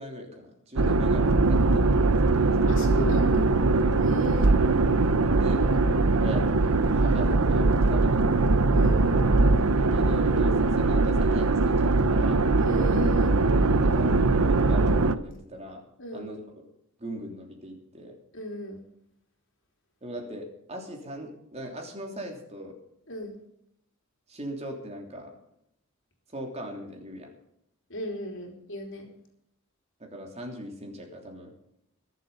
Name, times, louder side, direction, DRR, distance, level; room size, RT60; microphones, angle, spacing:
voice 1, 0.0-3.1 5.4-5.6 6.2-6.5 6.9-8.2 9.8-12.4 13.9-15.8 16.1-16.7 17.0-18.1 20.0-22.7 24.3-25.3 26.3-27.3 30.0-31.5, equal, 30° right, 2 dB, 3.2 m, -39 dB
sound 1, 0.8-15.2, right 3 dB, 75° right, 0.8 m, -21 dB
voice 2, 2.7-3.5 4.0-4.5 8.7-9.3 12.6-13.3 16.0-16.3 18.3-18.8 23.1-23.4 27.9-29.1, equal, 60° left, 3 dB, 3.5 m, -36 dB
22.0 x 7.7 x 5.5 m, 0.77 s
head